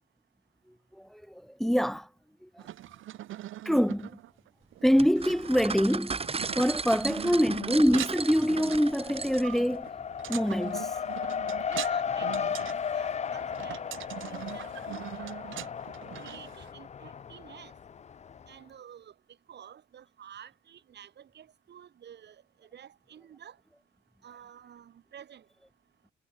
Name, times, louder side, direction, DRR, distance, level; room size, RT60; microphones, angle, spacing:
voice 1, 0.9-2.1 2.4-2.7 3.7-4.2 4.8-6.2 6.6-9.9 10.3-11.0, equal, ahead, 2.1 m, -25 dB
sound 1, 2.6-16.7, right 13 dB, 80° right, 2.5 m, -42 dB
sound 2, 5.0-9.7, right 4 dB, 30° right, 1.9 m, -36 dB
Race car auto racing, 6.1-6.8 7.1-18.5, left 7 dB, 35° left, 0.6 m, -36 dB
voice 2, 11.7-13.9 14.3-15.1 16.2-17.7 18.5-19.1 19.5-22.4 22.7-23.6 24.2-25.4, right 9 dB, 60° right, 3.5 m, -50 dB
cardioid pair, 90°, 20 cm